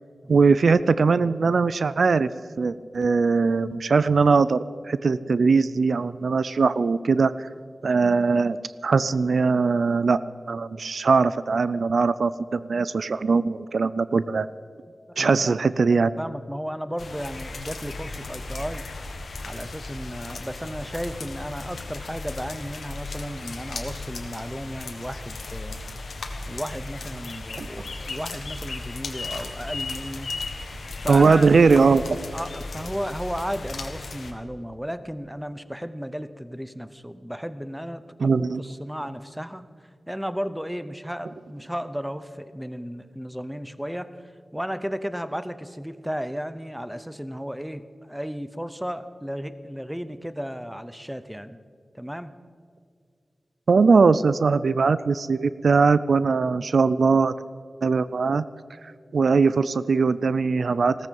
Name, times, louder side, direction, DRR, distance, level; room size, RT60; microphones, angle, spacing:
voice 1, 0.3-2.3 2.6-4.6 4.8-7.5 7.8-8.6 8.8-10.2 10.5-14.5 15.2-16.1 27.6-27.7 31.1-32.2 38.2-38.6 53.7-57.3 57.8-58.4 59.1-61.1, right 4 dB, 75° right, 16 dB, 0.4 m, -20 dB
voice 2, 15.1-15.6 16.2-18.9 19.4-25.8 26.5-30.3 31.0-31.5 32.3-39.6 40.1-51.6 51.9-52.3, equal, 5° right, 13 dB, 0.7 m, -34 dB
sound 1, 17.0-34.3, left 3 dB, 85° left, 1.4 m, -36 dB
16.5 x 14.0 x 5.4 m, 2.1 s
wide cardioid pair, 80°, 0 cm